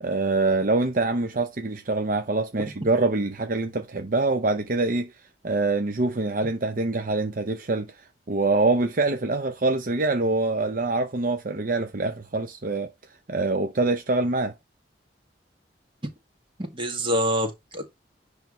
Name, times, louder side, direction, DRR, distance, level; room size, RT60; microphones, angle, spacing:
voice 1, 0.0-5.1 5.4-12.9 13.3-14.5, right 3 dB, 50° right, 0.7 m, -25 dB
voice 2, 16.6-17.8, equal, 30° right, 1.9 m, -26 dB
10.5 x 3.5 x 3.1 m
head